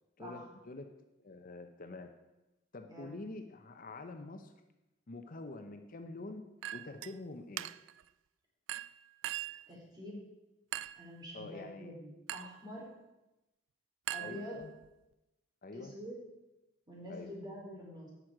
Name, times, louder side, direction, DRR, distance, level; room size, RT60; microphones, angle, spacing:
voice 1, 0.2-0.9 1.2-2.1 2.7-4.5 5.1-6.4 6.7-7.7 11.3-11.9 14.2-14.7 15.6-15.9 17.1-17.3, left 2 dB, 50° left, 6 dB, 0.7 m, -46 dB
Chink clink, 6.6-7.1 7.6-8.0 8.7-9.7 10.7-11.1 12.3-12.6 14.1-14.9, right 13 dB, 85° right, 0.3 m, -41 dB
voice 2, 9.7-10.2 11.0-12.9 14.1-14.6 15.7-16.2 16.9-18.1, equal, 25° right, -3 dB, 3.7 m, -46 dB
16.5 x 6.2 x 4.9 m, 0.98 s
head